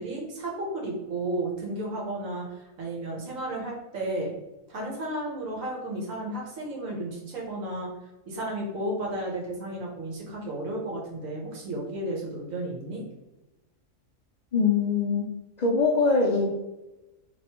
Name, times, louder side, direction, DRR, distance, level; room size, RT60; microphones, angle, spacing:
voice 1, 0.0-4.3 4.7-7.9 8.3-13.0, right 1 dB, 85° right, -2 dB, 1.4 m, -33 dB
voice 2, 14.5-15.3 15.6-16.5, left 4 dB, 80° left, -1 dB, 0.3 m, -23 dB
3.1 x 2.6 x 4.3 m, 1.0 s
omnidirectional pair, 1.3 m